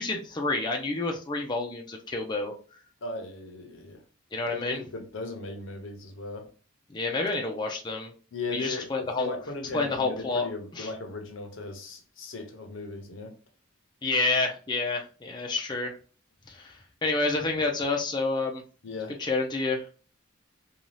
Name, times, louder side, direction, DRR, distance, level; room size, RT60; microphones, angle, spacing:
voice 1, 0.0-2.5 4.3-4.8 6.9-8.1 8.5-9.3 9.7-10.5 10.7-10.9 14.0-15.9 16.5-18.6 19.2-19.8, left 3 dB, 20° left, 0.4 m, -29 dB
voice 2, 3.0-4.0 4.5-6.5 8.3-13.4 18.8-19.2, left 3 dB, 75° left, 0.7 m, -37 dB
2.6 x 2.3 x 3.1 m
head